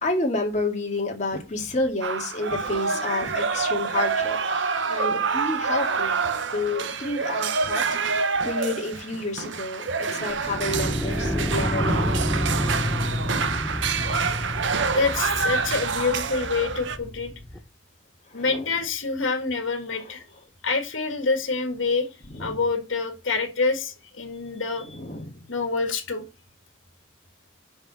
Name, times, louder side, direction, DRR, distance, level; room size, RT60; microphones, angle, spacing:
voice 1, 0.0-6.1 6.5-12.3 18.3-18.8 20.0-20.1 22.3-22.6 24.8-25.4, left 2 dB, 35° left, 2.1 m, -30 dB
sound 1, 2.0-17.0, right 5 dB, 65° right, 0.8 m, -27 dB
sound 2, 10.3-17.6, left 1 dB, 5° left, 0.8 m, -29 dB
voice 2, 15.0-17.3 18.3-20.2 20.6-22.1 22.4-25.0 25.5-26.2, left 4 dB, 80° left, 1.9 m, -26 dB
5.8 x 5.3 x 6.3 m
head